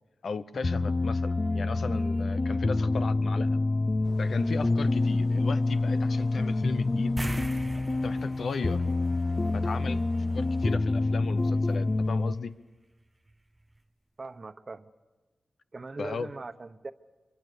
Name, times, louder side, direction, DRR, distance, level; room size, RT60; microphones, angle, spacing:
voice 1, 0.2-3.6 4.2-7.2 8.0-8.8 9.5-10.0 10.3-12.6 16.0-16.3, left 5 dB, 75° left, 12 dB, 0.9 m, -36 dB
sound 1, 0.5-12.4, left 2 dB, 40° left, 0.9 m, -27 dB
sound 2, 4.0-10.7, equal, ahead, 1.9 m, -50 dB
sound 3, 7.2-10.0 10.3-10.4 13.3-13.4 13.8-13.9, right 1 dB, 20° right, 0.8 m, -39 dB
voice 2, 14.2-14.9 15.7-16.9, right 3 dB, 40° right, 9 dB, 1.1 m, -40 dB
26.0 x 24.5 x 6.9 m, 1.3 s
cardioid pair, 80°, 0 cm